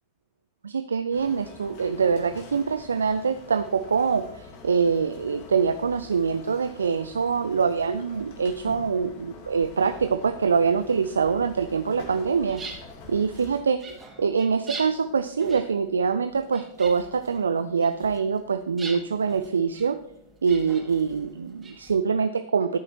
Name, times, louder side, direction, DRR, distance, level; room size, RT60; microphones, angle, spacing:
voice 1, 0.6-12.6 13.1-13.9 14.2-20.0 20.4-22.8, right 5 dB, 70° right, 12 dB, 0.4 m, -24 dB
sound 1, 1.1-13.6, left 3 dB, 45° left, 2.1 m, -47 dB
sound 2, 8.1-13.5, equal, 65° left, 2.5 m, -51 dB
sound 3, 12.1-21.9, right 3 dB, 20° right, 2.8 m, -44 dB
14.5 x 8.9 x 3.1 m, 0.78 s
figure-of-eight pair, 90°, 0 cm